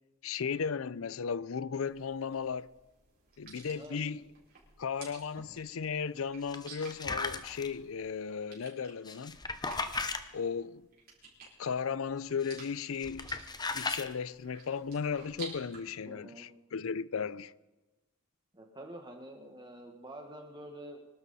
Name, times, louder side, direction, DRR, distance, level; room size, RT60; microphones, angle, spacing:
voice 1, 0.2-2.7 3.4-4.2 4.8-9.4 10.3-10.9 11.6-13.3 13.7-17.5, left 6 dB, 80° left, 0.5 m, -35 dB
sound 1, 1.8-15.8, right 4 dB, 50° right, 5.3 m, -53 dB
sound 2, 6.5-7.7 9.1-10.2 12.4-12.7 13.0-14.1, left 3 dB, 20° left, 0.9 m, -36 dB
voice 2, 16.0-16.5 18.5-21.1, right 1 dB, 20° right, 1.6 m, -47 dB
25.0 x 12.0 x 4.2 m
head